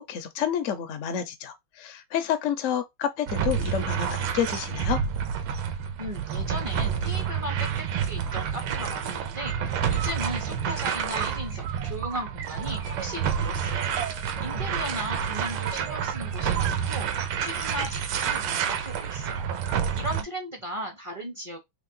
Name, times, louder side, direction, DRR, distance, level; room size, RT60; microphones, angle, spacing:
voice 1, 0.0-5.0, left 9 dB, 75° left, 0.7 m, -29 dB
sound 1, 3.3-20.2, right 7 dB, 85° right, 1.6 m, -29 dB
voice 2, 6.0-13.9 14.4-19.4 19.9-21.6, equal, 30° right, 0.5 m, -37 dB
sound 2, 9.9-17.1 17.6-17.9 18.2-19.1 19.6-19.8, right 8 dB, 60° right, 1.2 m, -39 dB
3.6 x 3.1 x 3.7 m
omnidirectional pair, 2.3 m